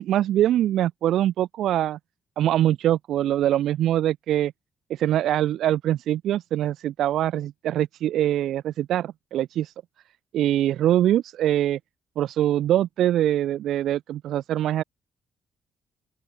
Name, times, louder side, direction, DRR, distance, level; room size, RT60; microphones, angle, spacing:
voice 1, 0.0-2.0 2.4-4.5 4.9-9.7 10.3-11.8 12.2-14.8, right 12 dB, 75° right, 2.7 m, -23 dB
open air
cardioid pair, 90°, 0 cm